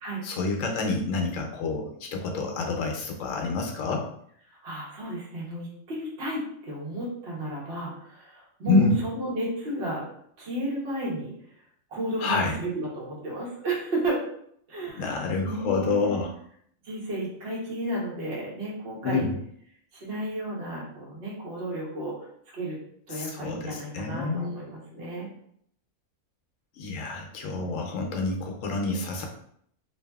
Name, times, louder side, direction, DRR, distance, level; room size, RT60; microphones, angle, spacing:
voice 1, 0.2-4.1 8.7-9.0 12.2-12.6 15.0-16.3 19.0-19.4 23.1-24.5 26.8-29.3, left 3 dB, 70° left, 1 dB, 1.0 m, -27 dB
voice 2, 4.5-10.1 10.4-11.3 11.9-14.2 14.7-16.2 16.8-19.3 19.9-22.3 22.5-22.8 23.1-25.3, right 1 dB, 50° right, -5 dB, 1.0 m, -33 dB
2.7 x 2.6 x 2.2 m, 0.66 s
omnidirectional pair, 1.4 m